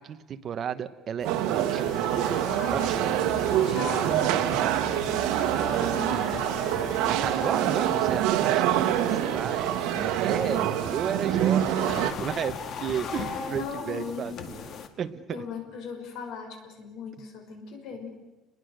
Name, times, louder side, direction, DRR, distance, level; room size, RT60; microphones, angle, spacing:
voice 1, 0.0-2.0 2.7-2.9 7.1-14.7 15.0-15.5, right 8 dB, 35° right, 10 dB, 1.1 m, -33 dB
sound 1, 1.2-14.9, left 6 dB, 45° left, 1.9 m, -39 dB
sound 2, 1.2-12.1, right 12 dB, 75° right, 1.6 m, -26 dB
voice 2, 2.6-6.9 13.1-14.3 15.3-18.1, left 5 dB, 60° left, 4 dB, 5.9 m, -39 dB
30.0 x 22.0 x 6.7 m, 1.1 s
cardioid pair, 160°, 0 cm